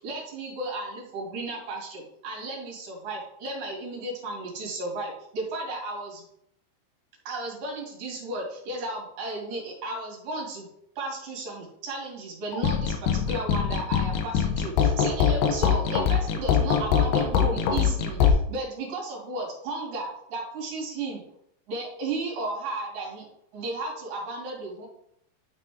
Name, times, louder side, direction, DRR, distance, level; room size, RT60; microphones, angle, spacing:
voice 1, 0.0-6.2 7.3-10.7 11.0-21.2 21.7-23.3 23.5-24.9, right 2 dB, 55° right, -3 dB, 4.0 m, -34 dB
sound 1, 12.5-18.3, left 7 dB, 75° left, 2.3 m, -23 dB
12.0 x 4.1 x 3.8 m, 0.73 s
omnidirectional pair, 5.0 m